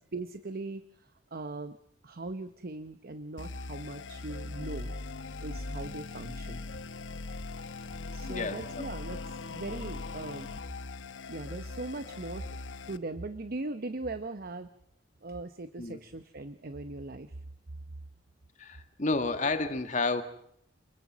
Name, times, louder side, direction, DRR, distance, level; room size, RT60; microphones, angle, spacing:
voice 1, 0.1-1.8 2.0-4.9 5.4-6.6 8.1-10.5 11.3-12.5 12.9-14.7 15.2-17.4, right 2 dB, 55° right, 11 dB, 0.9 m, -40 dB
sound 1, 3.4-13.0, left 3 dB, 85° left, 0.9 m, -40 dB
voice 2, 8.3-8.6 15.8-16.0 18.6-20.2, left 3 dB, 40° left, 8 dB, 1.8 m, -30 dB
28.0 x 21.5 x 6.2 m, 0.71 s
head